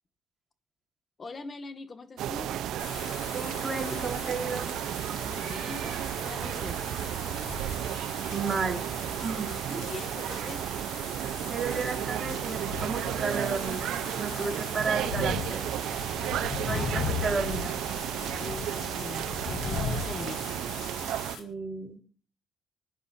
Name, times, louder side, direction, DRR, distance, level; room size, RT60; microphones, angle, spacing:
voice 1, 1.2-2.6 5.2-6.8 9.8-10.7 16.1-16.3 16.6-17.1 18.3-20.4, left 3 dB, 35° left, 9 dB, 1.9 m, -42 dB
sound 1, 2.2-21.4, right 11 dB, 75° right, 0.7 m, -33 dB
Wind / Rain, 2.8-21.4, left 6 dB, 80° left, 4.5 m, -39 dB
voice 2, 3.3-4.7 8.3-8.8 9.2-9.9 11.5-15.7 16.4-17.8 21.4-22.0, right 4 dB, 30° right, 1 dB, 4.4 m, -33 dB
28.0 x 9.7 x 2.7 m, 0.42 s
cardioid pair, 85°, 0 cm